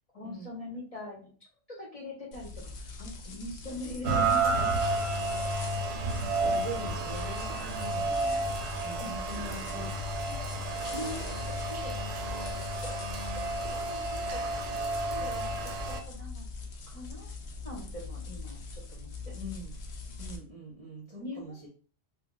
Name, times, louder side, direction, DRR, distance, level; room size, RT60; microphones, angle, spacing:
voice 1, 0.1-1.3 1.7-4.9 5.2-5.5 6.3-6.5 7.1-7.2 9.0-9.1 10.9-12.1 12.7-12.9 13.3-13.4 13.7-14.4 15.1-16.4 16.9-17.3 17.6-19.3 21.2-21.7, left 1 dB, 35° left, -2 dB, 0.8 m, -43 dB
sound 1, 2.3-20.4, left 3 dB, 75° left, 0.8 m, -42 dB
Rain, 4.0-16.0, right 2 dB, 75° right, 0.8 m, -31 dB
voice 2, 6.2-11.0 19.4-19.7 20.2-21.7, right 1 dB, 40° right, -3 dB, 0.6 m, -44 dB
2.2 x 2.1 x 3.7 m, 0.38 s
omnidirectional pair, 1.1 m